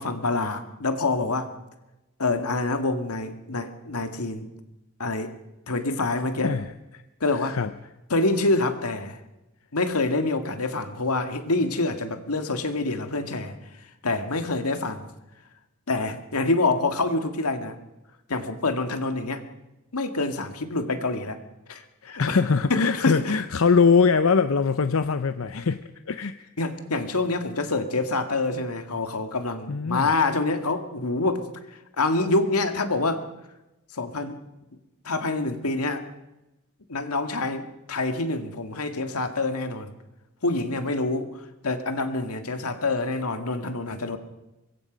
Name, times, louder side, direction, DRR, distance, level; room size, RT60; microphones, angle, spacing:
voice 1, 0.0-1.5 2.2-4.5 5.0-5.3 5.7-6.5 7.2-7.6 8.1-9.2 9.7-13.6 14.0-15.1 15.9-17.8 18.3-19.4 19.9-21.4 21.7-22.4 22.7-23.4 26.6-31.5 32.0-33.2 33.9-34.4 35.0-36.0 36.9-39.9 40.4-44.2, left 2 dB, 90° left, 7 dB, 1.9 m, -26 dB
voice 2, 7.3-7.7 22.0-25.8 26.1-26.5 29.7-30.1, left 5 dB, 65° left, 11 dB, 0.7 m, -22 dB
25.0 x 22.0 x 5.2 m, 0.97 s
head